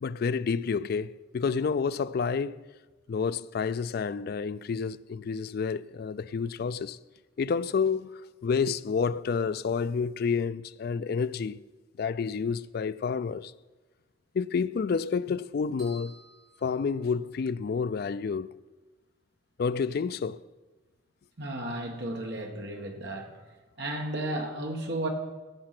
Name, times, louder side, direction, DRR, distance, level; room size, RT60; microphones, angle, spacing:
voice 1, 0.0-2.6 3.1-7.0 7.4-11.6 12.0-13.5 14.3-16.2 16.6-18.5 19.6-20.4, left 5 dB, 50° left, 0.3 m, -29 dB
sound 1, 15.8-17.6, equal, 25° right, 3.7 m, -54 dB
voice 2, 21.4-23.3 23.8-25.1, right 1 dB, 55° right, 1.7 m, -33 dB
15.0 x 7.5 x 6.0 m
head